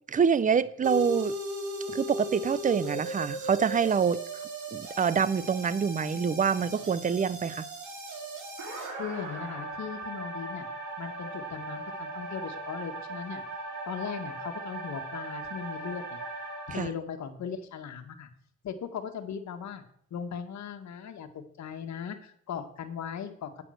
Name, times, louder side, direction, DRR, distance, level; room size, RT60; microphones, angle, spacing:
voice 1, 0.1-1.4 1.9-4.2 4.7-7.6 16.7-16.9, right 6 dB, 25° right, 0.6 m, -26 dB
sound 1, 0.8-16.8, right 1 dB, 75° right, 3.9 m, -38 dB
voice 2, 8.9-10.7 11.0-13.4 13.9-16.2 16.7-18.3 18.6-19.8 20.1-23.5, left 7 dB, 65° left, 1.7 m, -38 dB
8.9 x 8.5 x 6.5 m
cardioid pair, 90°, 30 cm